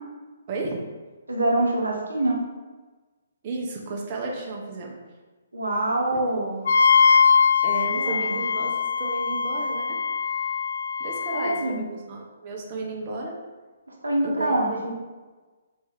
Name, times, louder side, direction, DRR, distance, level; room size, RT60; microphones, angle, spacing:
voice 1, 0.5-0.8 3.4-5.0 6.1-6.2 7.6-10.0 11.0-13.4 14.2-14.9, right 3 dB, 40° right, -1 dB, 0.7 m, -33 dB
voice 2, 1.3-2.4 5.5-6.6 7.8-8.4 11.3-11.8 14.0-14.9, right 1 dB, 90° right, -1 dB, 0.8 m, -25 dB
Wind instrument woodwind instrument, 6.6-11.6, left 6 dB, 65° left, 0.3 m, -22 dB
4.3 x 2.8 x 3.6 m, 1.3 s
figure-of-eight pair, 135°, 0 cm